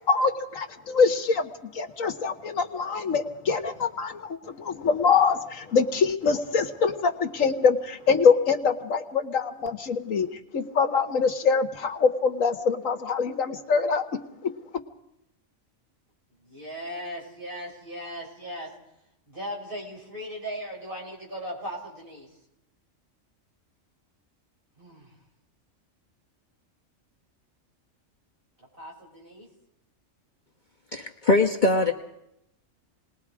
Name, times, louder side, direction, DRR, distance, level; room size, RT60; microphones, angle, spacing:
voice 1, 0.1-10.3 10.5-14.1 14.4-14.5, left 5 dB, 80° left, 9 dB, 1.7 m, -24 dB
voice 2, 16.4-18.7 19.3-22.3 24.8-25.1 28.6-29.5, equal, 40° right, -2 dB, 6.6 m, -38 dB
voice 3, 30.9-31.9, left 2 dB, 35° left, 2 dB, 1.3 m, -21 dB
28.0 x 20.5 x 4.9 m, 0.81 s
omnidirectional pair, 1.4 m